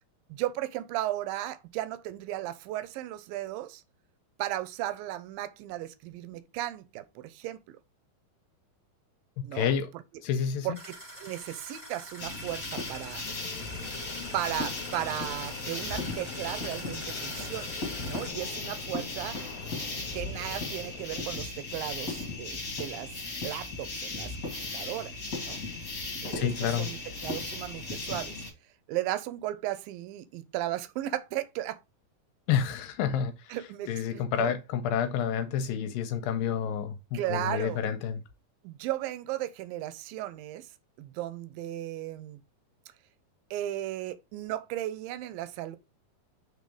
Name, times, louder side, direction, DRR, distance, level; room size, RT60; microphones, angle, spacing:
voice 1, 0.3-3.8 4.4-7.8 9.4-9.7 10.6-13.3 14.3-19.4 20.1-23.1 23.4-25.1 25.4-25.6 26.2-26.5 26.8-28.4 28.9-31.8 33.5-34.5 37.1-37.8 38.6-40.7 41.0-42.4 43.5-45.8, right 14 dB, 80° right, 2.3 m, -35 dB
voice 2, 9.5-9.9 10.2-10.7 26.3-26.9 32.5-33.5 33.9-38.2, left 8 dB, 80° left, 2.3 m, -29 dB
sound 1, 10.7-18.3, equal, 5° right, 1.1 m, -46 dB
sound 2, 12.2-28.5, left 3 dB, 30° left, 1.9 m, -36 dB
sound 3, 13.2-21.0, left 7 dB, 65° left, 2.0 m, -45 dB
5.5 x 3.9 x 4.9 m
omnidirectional pair, 4.3 m